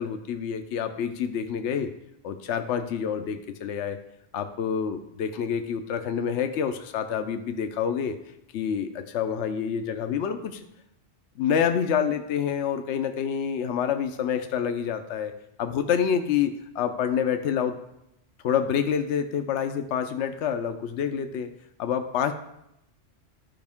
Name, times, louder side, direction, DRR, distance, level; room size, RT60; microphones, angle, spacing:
voice 1, 0.0-1.9 2.2-4.0 4.3-8.2 8.5-10.6 11.4-15.3 15.6-17.8 18.4-21.5 21.8-22.3, left 8 dB, 75° left, 8 dB, 0.9 m, -27 dB
12.5 x 5.2 x 3.6 m, 0.82 s
omnidirectional pair, 1.2 m